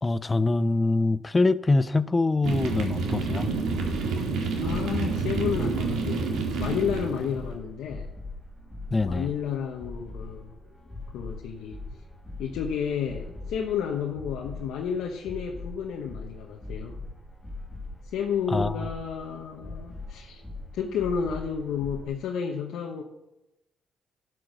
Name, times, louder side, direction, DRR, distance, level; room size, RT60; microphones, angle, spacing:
voice 1, 0.0-3.5 8.9-9.3 18.5-18.8, left 2 dB, 25° left, 0.5 m, -24 dB
sound 1, 2.4-7.5, right 4 dB, 80° right, 2.1 m, -28 dB
voice 2, 4.6-8.1 9.0-10.5 11.1-11.8 12.4-17.0 18.1-20.4 20.7-23.0, left 7 dB, 85° left, 1.0 m, -31 dB
sound 2, 5.1-22.1, left 2 dB, 5° left, 3.4 m, -41 dB
11.5 x 6.2 x 6.1 m
cardioid pair, 90°, 0 cm